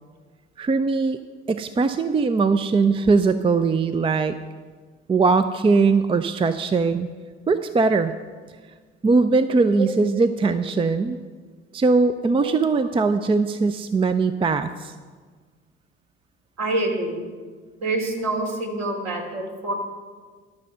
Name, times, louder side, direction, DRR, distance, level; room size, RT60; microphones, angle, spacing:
voice 1, 0.6-1.2 1.5-4.4 5.1-7.1 7.5-8.1 9.0-11.2 11.7-14.9, right 4 dB, 15° right, 11 dB, 0.5 m, -20 dB
voice 2, 16.6-17.3 17.8-19.7, right 2 dB, 55° right, 0 dB, 3.0 m, -26 dB
12.0 x 6.8 x 6.7 m, 1.5 s
figure-of-eight pair, 50°, 32 cm